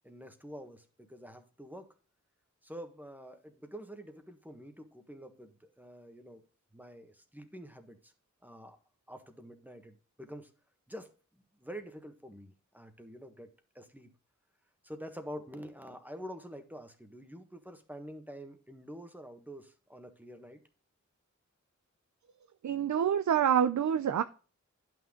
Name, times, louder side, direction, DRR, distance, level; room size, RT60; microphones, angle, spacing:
voice 1, 0.0-1.9 2.6-6.4 6.7-8.1 8.4-8.8 9.1-10.5 10.9-11.1 11.6-14.1 14.8-20.6, equal, 5° right, 7 dB, 1.4 m, -47 dB
voice 2, 22.6-24.2, right 9 dB, 70° right, 12 dB, 0.5 m, -27 dB
11.0 x 6.2 x 3.8 m, 0.37 s
wide cardioid pair, 105°, 30 cm